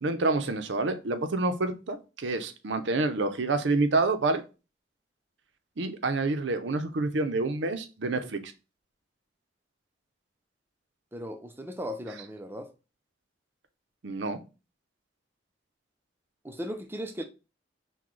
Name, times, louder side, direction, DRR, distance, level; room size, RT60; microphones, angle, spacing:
voice 1, 0.0-4.4 5.8-8.5 14.0-14.4, right 3 dB, 75° right, 0.6 m, -28 dB
voice 2, 11.1-12.7 16.4-17.2, equal, 10° right, 0.4 m, -37 dB
5.9 x 2.2 x 3.1 m
head